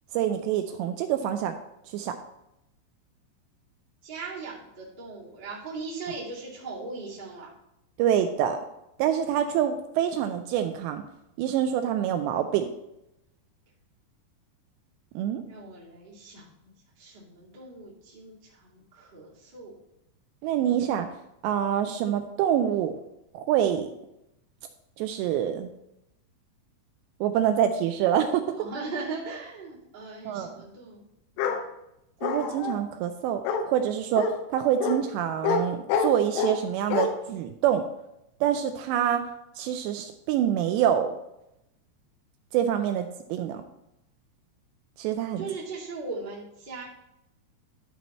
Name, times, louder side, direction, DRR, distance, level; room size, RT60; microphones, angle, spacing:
voice 1, 0.1-1.6 1.9-2.2 8.0-8.6 9.0-11.0 11.4-12.7 15.2-15.4 20.4-21.1 21.4-22.9 23.3-23.9 25.0-25.7 27.2-28.6 30.3-30.6 32.2-37.8 38.4-39.2 39.6-41.1 42.5-43.6 45.0-45.5, right 10 dB, 85° right, 7 dB, 2.6 m, -26 dB
voice 2, 4.0-7.5 15.4-19.7 28.5-31.0 31.3-31.6 45.4-46.8, right 3 dB, 25° right, -7 dB, 1.1 m, -39 dB
Bark, 31.4-31.6 32.2-32.8 33.4-33.6 34.2-34.3 34.8-35.0 35.4-35.6 35.9-36.6 36.9-37.1, left 5 dB, 85° left, 3.2 m, -26 dB
12.0 x 4.2 x 4.2 m, 0.84 s
omnidirectional pair, 5.3 m